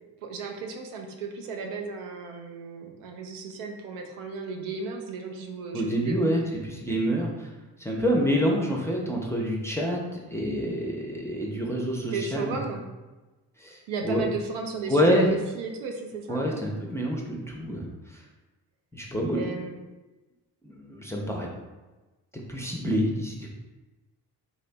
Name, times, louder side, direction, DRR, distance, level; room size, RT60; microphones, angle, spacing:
voice 1, 0.2-6.2 12.1-12.8 13.9-16.5 19.3-19.8, right 4 dB, 75° right, 2 dB, 0.5 m, -34 dB
voice 2, 5.7-7.5 7.8-10.0 10.3-12.5 13.6-13.8 14.0-14.3 14.9-15.3 16.3-17.9 18.9-19.4 20.6-21.5 22.5-23.5, equal, 5° left, -1 dB, 0.5 m, -27 dB
2.9 x 2.1 x 2.6 m, 1.2 s
hypercardioid pair, 40°, 48 cm